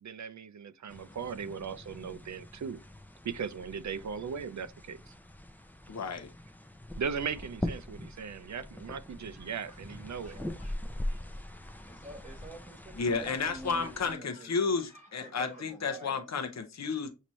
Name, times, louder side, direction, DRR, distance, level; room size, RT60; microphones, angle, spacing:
voice 1, 0.0-2.8 3.2-5.1 7.0-10.4, right 6 dB, 60° right, 0.4 m, -38 dB
sound 1, 0.9-14.2, left 1 dB, 5° left, 0.5 m, -42 dB
voice 2, 5.9-6.3 13.0-17.1, left 5 dB, 55° left, 0.7 m, -32 dB
voice 3, 9.3-9.8 10.1-16.2, equal, 20° right, 1.2 m, -49 dB
6.0 x 2.8 x 3.0 m
wide cardioid pair, 50°, 33 cm